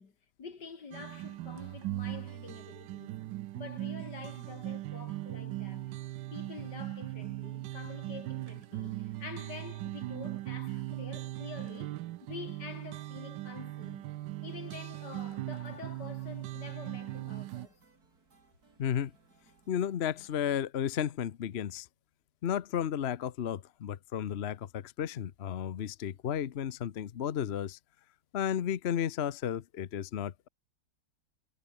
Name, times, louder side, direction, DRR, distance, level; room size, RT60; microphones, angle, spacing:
voice 1, 0.0-3.2 3.5-5.9 6.3-14.1 14.4-17.8, left 5 dB, 75° left, 3.3 m, -47 dB
sound 1, 0.9-17.7, right 16 dB, 85° right, 1.3 m, -39 dB
sound 2, 15.2-20.6, right 4 dB, 60° right, 3.7 m, -66 dB
voice 2, 18.8-19.1 19.7-21.9 22.4-27.8 28.3-30.5, left 9 dB, 50° left, 0.8 m, -33 dB
omnidirectional pair, 1.9 m